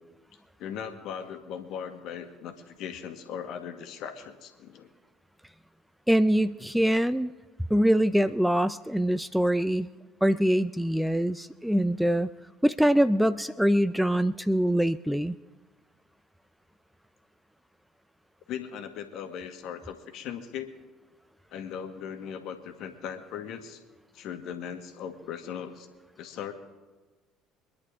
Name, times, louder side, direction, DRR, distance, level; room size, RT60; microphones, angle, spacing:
voice 1, 0.6-4.9 18.5-20.7 21.5-23.8 24.1-25.9 26.2-26.5, left 8 dB, 60° left, 7 dB, 1.8 m, -38 dB
voice 2, 6.1-7.3 7.7-9.9 10.2-12.3 12.6-15.4, equal, ahead, 14 dB, 0.5 m, -24 dB
25.0 x 10.5 x 3.7 m, 1.3 s
hypercardioid pair, 60°, 0 cm